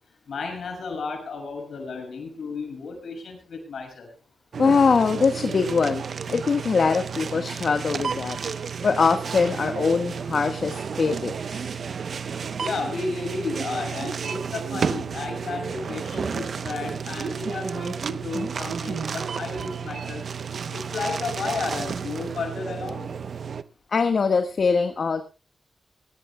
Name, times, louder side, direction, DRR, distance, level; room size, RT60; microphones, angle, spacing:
voice 1, 0.3-4.1 12.6-20.2 20.7-23.1, left 4 dB, 80° left, 3 dB, 7.2 m, -33 dB
sound 1, 4.5-23.6, right 6 dB, 75° right, 0.9 m, -32 dB
voice 2, 4.6-6.0 6.3-8.4 8.8-11.7 23.9-25.2, left 5 dB, 65° left, 7 dB, 1.6 m, -22 dB
22.5 x 17.5 x 2.3 m, 0.32 s
cardioid pair, 60°, 0 cm